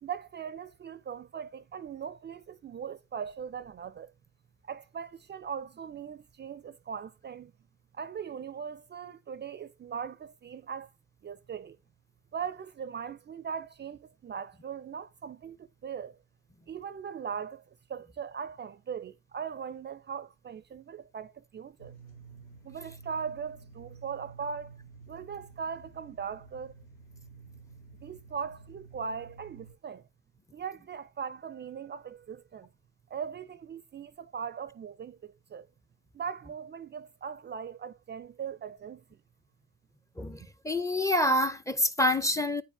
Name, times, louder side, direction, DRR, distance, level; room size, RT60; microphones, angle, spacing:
voice 1, 0.0-4.1 4.6-7.5 7.9-10.9 11.2-11.8 12.3-15.6 15.8-16.1 16.7-17.6 17.9-21.9 22.6-24.7 25.1-26.7 28.0-30.0 30.5-32.7 33.1-35.7 36.1-39.0, right 7 dB, 35° right, 0.5 m, -39 dB
sound 1, 21.8-29.7, right 4 dB, 85° left, 1.2 m, -51 dB
voice 2, 40.6-42.6, left 1 dB, 10° left, 0.7 m, -26 dB
9.4 x 4.7 x 3.4 m
hypercardioid pair, 55°, 33 cm